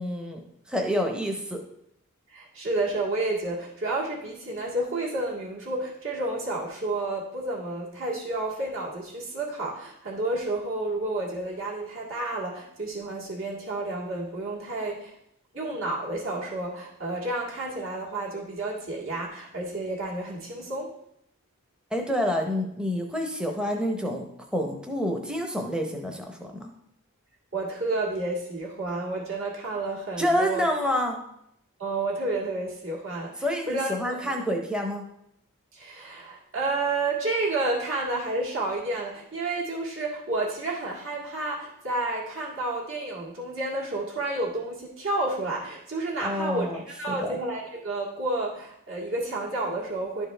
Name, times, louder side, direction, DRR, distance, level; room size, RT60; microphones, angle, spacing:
voice 1, 0.0-1.6 21.9-26.6 30.2-31.2 33.4-35.0 46.2-46.8 47.1-47.4, equal, 5° right, 2 dB, 0.7 m, -28 dB
voice 2, 2.3-15.1 15.5-20.9 27.5-30.7 31.8-34.4 35.7-50.3, right 2 dB, 60° right, -3 dB, 1.9 m, -30 dB
11.5 x 4.5 x 3.3 m, 0.76 s
head